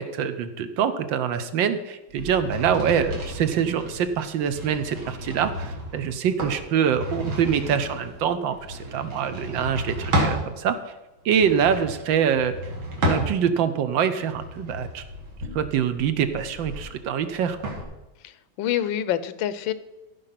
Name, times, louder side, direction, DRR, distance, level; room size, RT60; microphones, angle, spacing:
voice 1, 0.0-10.8 11.2-12.5 13.0-15.0 15.5-17.6, right 8 dB, 75° right, 10 dB, 1.5 m, -24 dB
sound 1, 2.1-10.4 11.2-13.7 14.2-17.8, equal, 90° right, 3.0 m, -32 dB
voice 2, 18.2-19.7, left 11 dB, 80° left, 14 dB, 1.4 m, -27 dB
15.0 x 5.4 x 5.8 m, 1.0 s
omnidirectional pair, 2.2 m